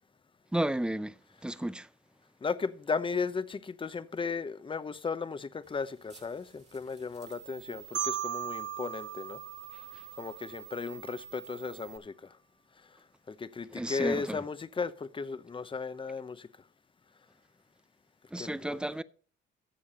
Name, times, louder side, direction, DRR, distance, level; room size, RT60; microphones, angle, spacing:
voice 1, 0.5-1.2 1.4-1.9 13.7-14.4 18.3-19.0, right 1 dB, 5° right, 0.5 m, -32 dB
voice 2, 2.4-9.4 10.2-12.3 13.3-16.5 18.4-18.8, left 5 dB, 25° left, 0.8 m, -35 dB
sound 1, 5.6-12.0, right 13 dB, 35° right, 2.4 m, -51 dB
Marimba xylophone, 7.9-10.8, right 10 dB, 65° right, 1.3 m, -37 dB
14.0 x 7.2 x 4.2 m
cardioid pair, 90°, 20 cm